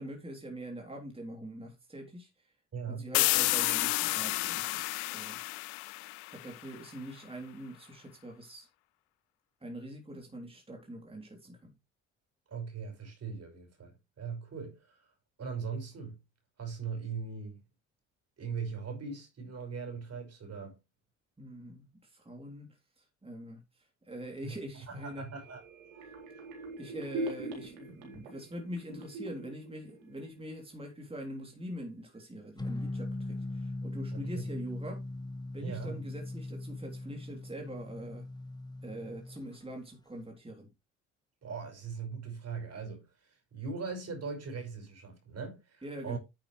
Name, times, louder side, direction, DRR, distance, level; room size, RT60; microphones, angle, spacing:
voice 1, 0.0-2.5 2.9-5.7 6.3-8.7 9.6-11.7 21.4-25.3 26.8-35.0 35.5-38.3 38.8-40.7 45.8-46.2, equal, 15° right, 3.5 m, -44 dB
voice 2, 2.7-3.1 12.5-15.1 15.4-16.2 16.6-17.6 18.4-20.7 24.4-24.5 24.9-25.6 34.1-34.4 35.6-36.0 41.4-46.2, right 5 dB, 45° right, 5.8 m, -40 dB
sound 1, 3.1-6.8, left 23 dB, 80° left, 0.5 m, -30 dB
sound 2, 25.0-30.6 31.0-31.1, right 2 dB, 80° right, 4.0 m, -42 dB
sound 3, 32.6-39.4, left 2 dB, 10° left, 1.7 m, -39 dB
9.9 x 8.3 x 3.3 m
hypercardioid pair, 55°, 34 cm